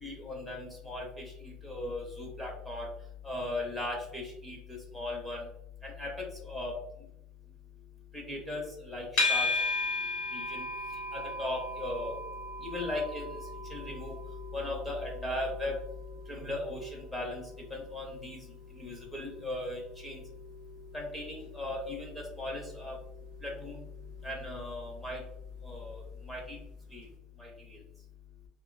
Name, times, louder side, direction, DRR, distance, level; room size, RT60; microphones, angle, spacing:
voice 1, 0.0-2.9 3.2-4.6 4.9-5.4 5.8-6.1 6.4-6.7 8.1-9.5 10.3-10.6 11.1-12.2 12.6-13.4 13.7-14.1 14.5-15.8 16.3-17.4 17.7-18.4 18.7-20.2 20.9-22.9 23.4-23.8 24.2-25.2 25.6-26.6 26.9-27.0 27.4-27.5, left 2 dB, 5° left, -2 dB, 0.6 m, -37 dB
sound 1, 9.2-26.4, left 2 dB, 65° left, 1.2 m, -38 dB
2.9 x 2.8 x 2.4 m, 0.81 s
cardioid pair, 175°, 0 cm